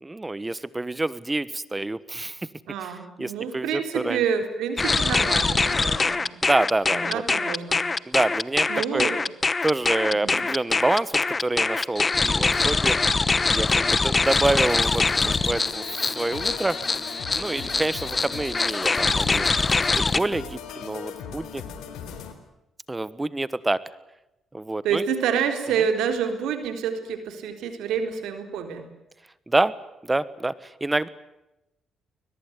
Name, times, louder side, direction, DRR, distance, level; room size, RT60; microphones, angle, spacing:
voice 1, 0.0-2.4 2.8-2.9 3.2-4.2 6.4-7.2 8.1-9.1 9.6-13.0 13.5-16.8 17.3-19.4 19.9-21.6 22.9-23.8 24.5-25.0 29.5-29.7 30.0-31.1, right 2 dB, 15° right, 18 dB, 1.2 m, -27 dB
voice 2, 2.7-6.3 6.9-7.8 8.7-9.2 10.1-10.4 24.8-28.8, right 7 dB, 85° right, 7 dB, 4.0 m, -28 dB
sound 1, 4.8-20.2, left 3 dB, 25° left, 1.0 m, -23 dB
sound 2, 14.3-22.3, left 7 dB, 90° left, 3.8 m, -39 dB
22.5 x 21.0 x 9.7 m, 0.91 s
cardioid pair, 90°, 0 cm